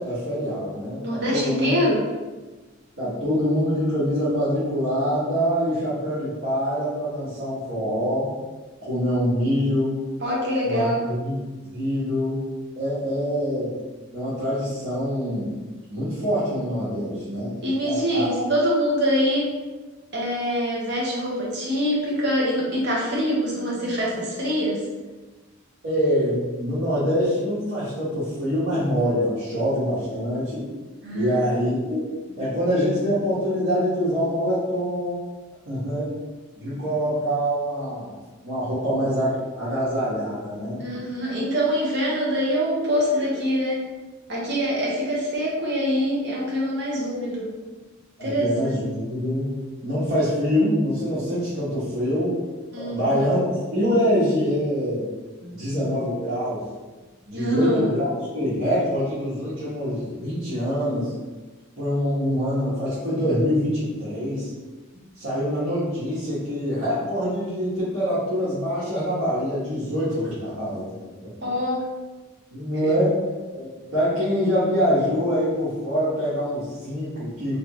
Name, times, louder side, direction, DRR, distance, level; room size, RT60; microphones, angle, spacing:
voice 1, 0.0-1.7 3.0-8.3 8.8-10.0 10.6-11.4 11.7-12.4 12.7-13.7 14.1-15.5 15.9-17.5 17.8-18.4 25.8-30.7 31.1-32.1 32.4-35.2 35.6-36.1 36.6-38.1 38.4-40.9 48.2-49.6 49.8-52.3 52.8-55.1 55.5-56.6 57.3-61.1 61.8-64.5 65.2-70.9 71.2-71.3 72.5-73.2 73.5-77.6, equal, 90° right, -13 dB, 1.5 m, -25 dB
voice 2, 1.0-2.0 10.2-11.0 17.6-19.5 20.1-24.8 31.0-31.5 32.3-32.4 40.8-43.8 44.3-47.5 48.2-48.5 52.7-53.2 55.4-56.1 57.3-57.9 71.4-71.8 72.8-72.9, equal, 55° right, -5 dB, 1.2 m, -24 dB
3.4 x 3.3 x 3.1 m, 1.2 s
head